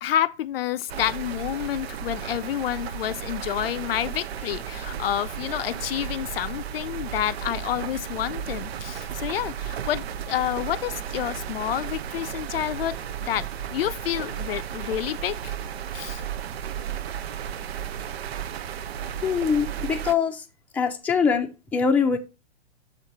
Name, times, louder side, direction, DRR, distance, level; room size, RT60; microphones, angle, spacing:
voice 1, 0.0-15.5 15.9-16.2, left 11 dB, 60° left, 0.5 m, -29 dB
sound 1, 0.9-20.1, right 9 dB, 65° right, 0.6 m, -34 dB
voice 2, 19.2-20.4 20.7-22.2, left 6 dB, 5° left, 0.6 m, -23 dB
6.5 x 3.9 x 4.5 m
hypercardioid pair, 120°, 33 cm